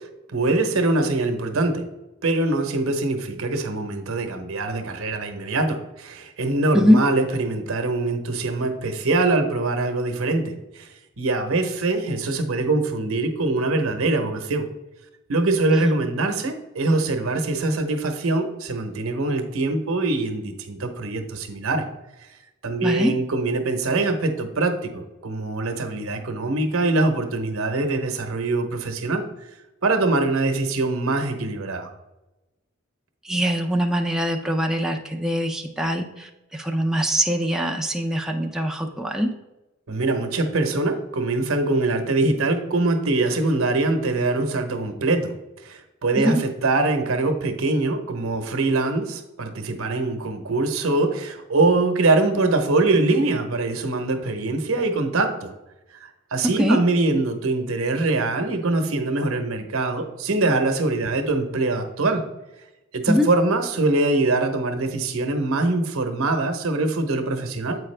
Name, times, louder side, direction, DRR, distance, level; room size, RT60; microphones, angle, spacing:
voice 1, 0.3-1.8 2.2-10.9 11.2-14.7 15.3-21.8 22.6-29.2 29.8-31.9 39.9-45.3 45.6-55.5 56.0-62.2 62.9-67.8, right 2 dB, 75° right, 6 dB, 0.9 m, -23 dB
voice 2, 22.8-23.2 33.2-39.3 46.2-46.4 56.4-56.8 63.1-63.3, equal, 5° right, 1 dB, 0.4 m, -22 dB
7.9 x 4.8 x 3.3 m, 1.0 s
head